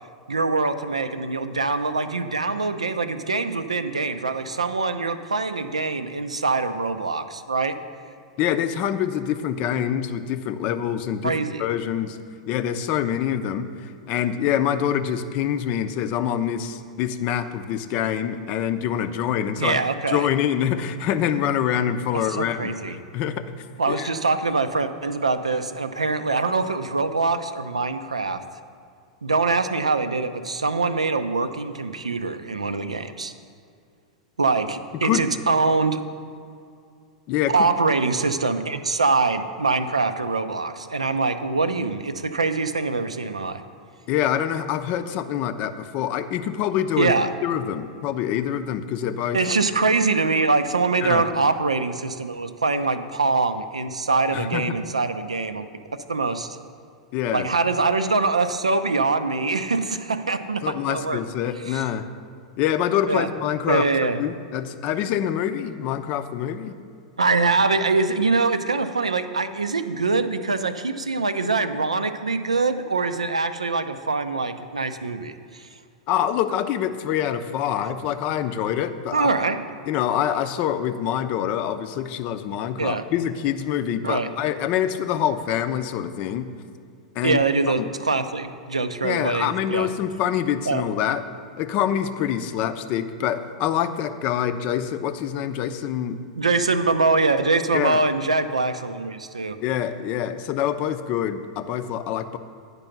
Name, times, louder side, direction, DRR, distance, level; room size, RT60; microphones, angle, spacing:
voice 1, 0.3-7.8 11.2-11.6 19.6-20.3 22.1-23.0 23.8-28.4 29.2-33.3 34.4-36.0 37.5-43.6 47.0-47.3 49.3-55.7 55.9-56.6 57.3-61.2 61.7-61.8 63.1-63.3 63.7-64.2 67.2-75.7 79.1-79.6 82.8-83.0 84.0-84.3 87.2-89.9 90.7-90.9 96.3-99.6, right 3 dB, 85° right, 10 dB, 0.5 m, -23 dB
voice 2, 8.4-11.3 11.6-12.2 12.5-19.8 20.1-23.4 23.9-24.1 35.0-35.2 37.3-37.7 44.1-47.1 47.4-49.4 51.0-51.3 54.3-54.8 57.1-57.5 60.6-62.1 62.6-63.8 64.2-66.7 76.1-79.3 79.9-86.5 87.2-87.4 87.8-87.9 89.0-91.2 91.6-96.2 97.7-98.0 99.6-102.4, left 10 dB, 40° left, 10 dB, 0.5 m, -25 dB
9.7 x 5.3 x 5.8 m, 2.3 s
figure-of-eight pair, 95°, 3 cm